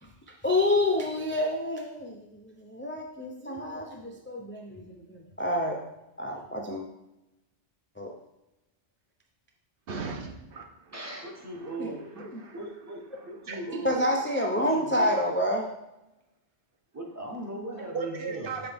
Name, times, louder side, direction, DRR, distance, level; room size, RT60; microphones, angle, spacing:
voice 1, 0.0-5.8 6.2-6.9 8.0-8.1 11.8-12.4 13.7-15.7, left 1 dB, 15° left, 0 dB, 0.4 m, -29 dB
voice 2, 9.9-10.9 11.5-11.7 12.2-12.6 13.5-13.6 17.9-18.7, right 4 dB, 65° right, 2 dB, 0.9 m, -37 dB
voice 3, 10.9-12.2 12.5-14.2 14.5-15.4 16.9-18.7, right 1 dB, 15° right, -1 dB, 1.0 m, -39 dB
7.1 x 4.1 x 3.5 m, 0.94 s
omnidirectional pair, 1.1 m